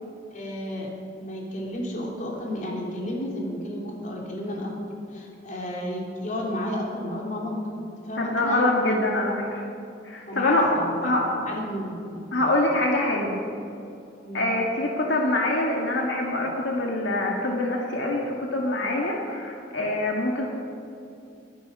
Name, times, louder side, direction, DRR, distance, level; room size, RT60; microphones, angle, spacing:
voice 1, 0.3-0.9 1.2-4.7 5.1-7.6 8.1-8.9 10.2-12.2 14.2-14.5, left 1 dB, 45° left, -2 dB, 3.2 m, -32 dB
voice 2, 8.2-9.6 10.0-10.7 11.0-11.3 12.3-13.4 14.3-20.5, left 1 dB, 75° left, -1 dB, 1.8 m, -25 dB
20.5 x 10.5 x 5.5 m, 2.7 s
head